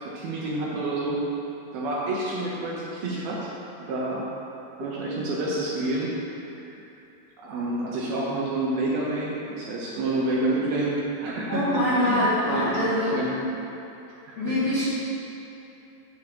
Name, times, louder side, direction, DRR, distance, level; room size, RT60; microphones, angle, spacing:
voice 1, 0.0-1.2 1.7-3.5 3.9-4.3 4.8-6.1 6.5-6.8 7.4-13.4 14.3-14.9, right 2 dB, 70° right, -5 dB, 2.6 m, -29 dB
voice 2, 11.5-13.3 14.4-14.9, left 1 dB, 50° left, -12 dB, 2.2 m, -24 dB
7.8 x 5.7 x 7.3 m, 2.9 s
omnidirectional pair, 5.1 m